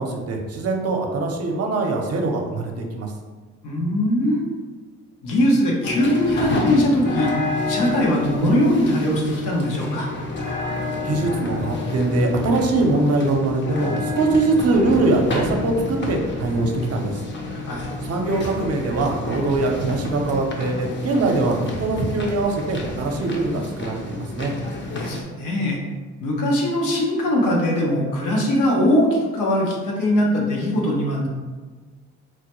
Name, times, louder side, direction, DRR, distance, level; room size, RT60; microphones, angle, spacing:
voice 1, 0.0-3.1 11.0-17.2 17.5-17.6 18.0-24.5, right 2 dB, 55° right, 2 dB, 0.7 m, -22 dB
voice 2, 3.6-4.4 5.2-7.3 7.7-10.1 17.6-17.9 24.9-25.8 26.2-31.3, left 1 dB, 85° left, -2 dB, 0.9 m, -21 dB
sound 1, 5.8-25.2, left 3 dB, 40° left, 0.6 m, -29 dB
4.5 x 2.2 x 3.0 m, 1.3 s
cardioid pair, 90°, 30 cm